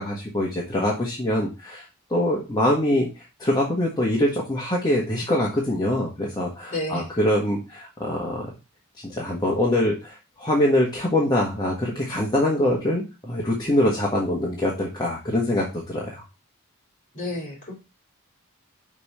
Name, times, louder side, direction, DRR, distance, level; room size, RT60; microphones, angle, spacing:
voice 1, 0.0-8.5 9.1-16.2, left 1 dB, 20° left, -4 dB, 1.4 m, -24 dB
voice 2, 6.7-7.1 17.1-17.7, left 1 dB, 35° left, -1 dB, 3.0 m, -30 dB
5.5 x 5.2 x 4.2 m, 0.29 s
head